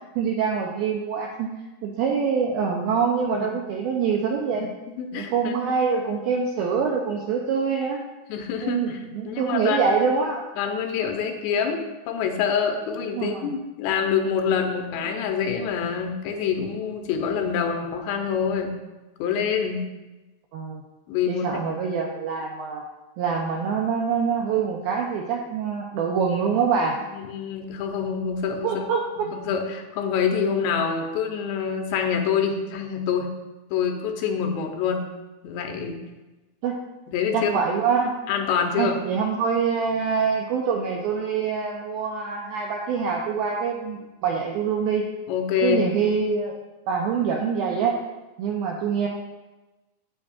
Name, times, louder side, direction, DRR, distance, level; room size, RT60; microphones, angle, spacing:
voice 1, 0.2-1.5 1.8-4.7 5.1-8.0 8.6-10.4 13.1-13.5 20.5-20.8 21.3-22.8 23.2-27.0 28.6-29.0 36.6-36.8 37.3-38.2 38.8-45.0 45.6-46.5 46.9-47.9 48.4-49.1, right 6 dB, 85° right, 0 dB, 2.1 m, -25 dB
voice 2, 5.0-5.6 8.3-9.0 9.3-10.0 10.6-18.7 19.2-19.8 21.1-21.6 27.1-28.8 29.2-33.3 33.7-35.1 35.4-36.0 37.1-37.5 38.3-39.0 45.3-45.8, left 7 dB, 90° left, 3 dB, 3.0 m, -26 dB
9.7 x 8.7 x 2.4 m, 1.1 s
omnidirectional pair, 5.0 m